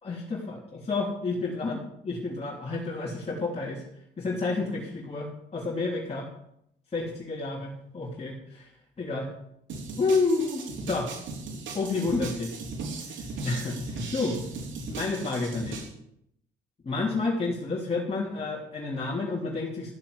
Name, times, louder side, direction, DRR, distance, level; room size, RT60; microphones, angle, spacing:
voice 1, 0.0-3.8 4.2-6.3 6.9-8.7 9.0-9.3 10.0-10.6 10.9-11.1 11.7-12.5 13.4-14.4 14.9-15.8 16.8-19.9, left 3 dB, 30° left, -4 dB, 3.1 m, -30 dB
sound 1, 9.7-15.9, right 3 dB, 75° right, 3.8 m, -37 dB
13.5 x 7.5 x 8.0 m, 0.74 s
cardioid pair, 90°, 20 cm